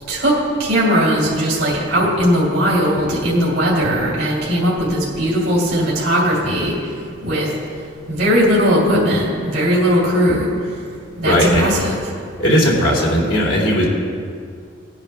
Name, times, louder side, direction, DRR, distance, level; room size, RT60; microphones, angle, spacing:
voice 1, 0.1-6.8 7.2-7.5 8.1-10.5 11.2-11.9, equal, 65° right, -7 dB, 3.1 m, -18 dB
voice 2, 11.2-11.7 12.4-13.9, equal, 85° left, -3 dB, 3.0 m, -16 dB
19.5 x 10.0 x 2.4 m, 2.2 s
head